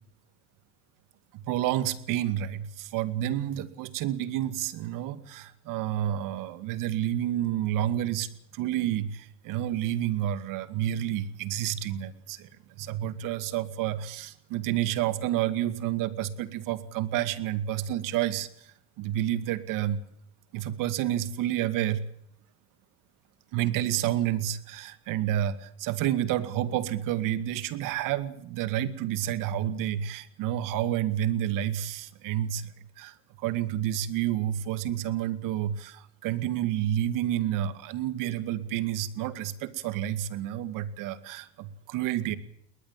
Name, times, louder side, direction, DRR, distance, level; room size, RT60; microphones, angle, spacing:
voice 1, 1.3-20.0 20.5-22.1 23.5-42.4, right 12 dB, 65° right, 13 dB, 2.3 m, -30 dB
21.0 x 20.5 x 7.5 m, 0.70 s
supercardioid pair, 110°, 34 cm